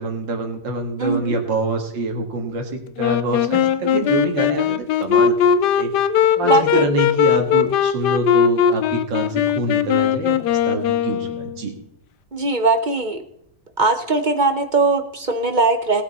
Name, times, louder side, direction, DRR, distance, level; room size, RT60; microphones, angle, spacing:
voice 1, 0.0-5.9 6.4-11.7, right 2 dB, 85° right, 4 dB, 2.5 m, -26 dB
voice 2, 1.0-1.4 6.4-7.0 12.3-13.2 13.8-16.0, right 3 dB, 50° right, 7 dB, 0.5 m, -20 dB
Wind instrument woodwind instrument, 3.0-11.7, left 8 dB, 75° left, 1.2 m, -19 dB
18.5 x 8.7 x 4.2 m, 0.76 s
omnidirectional pair, 1.9 m